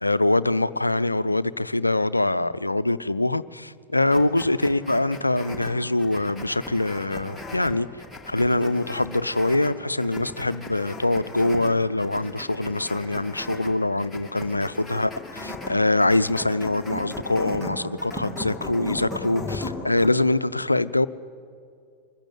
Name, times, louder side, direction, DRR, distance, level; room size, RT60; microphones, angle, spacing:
voice 1, 0.0-7.9 8.3-21.1, left 2 dB, 85° left, 16 dB, 0.5 m, -24 dB
sound 1, 4.1-20.1, left 2 dB, 5° left, 2.5 m, -37 dB
24.0 x 15.0 x 9.6 m, 2.3 s
figure-of-eight pair, 90°, 0 cm